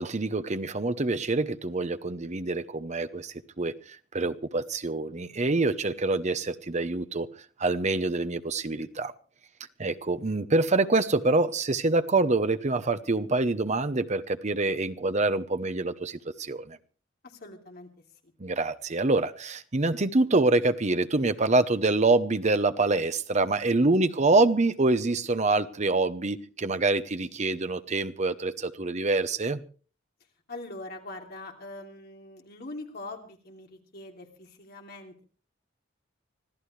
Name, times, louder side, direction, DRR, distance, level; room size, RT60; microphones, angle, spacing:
voice 1, 0.0-3.7 4.1-7.3 7.6-9.1 9.8-16.8 18.4-29.6, right 2 dB, 35° right, 0.9 m, -26 dB
voice 2, 17.2-17.9 18.2-18.3 24.0-24.3 30.5-35.2, left 2 dB, 55° left, 3.0 m, -43 dB
25.5 x 14.5 x 3.3 m
head